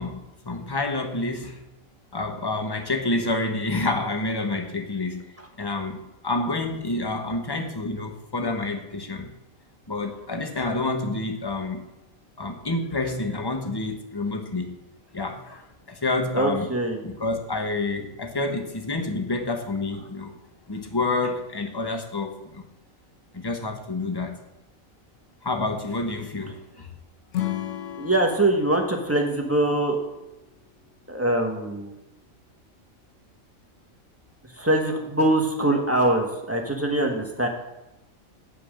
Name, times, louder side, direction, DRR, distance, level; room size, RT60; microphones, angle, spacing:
voice 1, 0.0-1.6 2.1-5.3 5.6-6.0 6.2-9.3 9.9-11.8 12.4-14.8 15.1-16.7 17.0-20.3 20.7-22.6 23.3-24.4 25.4-26.9, left 2 dB, 20° left, 5 dB, 0.9 m, -28 dB
voice 2, 16.3-17.0 28.0-30.0 31.1-31.9 34.6-37.5, right 1 dB, 10° right, 1 dB, 1.0 m, -23 dB
Acoustic guitar / Strum, 27.3-30.6, left 12 dB, 70° left, 1.0 m, -34 dB
8.6 x 5.5 x 6.3 m, 0.96 s
omnidirectional pair, 1.4 m